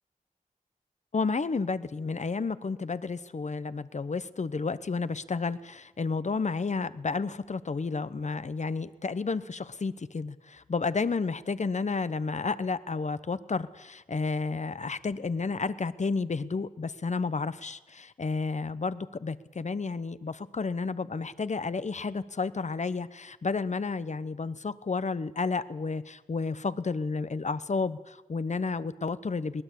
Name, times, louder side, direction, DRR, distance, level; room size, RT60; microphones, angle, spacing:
voice 1, 1.1-29.6, left 4 dB, 55° left, 15 dB, 1.0 m, -31 dB
22.0 x 19.5 x 8.5 m, 1.0 s
wide cardioid pair, 75°, 14 cm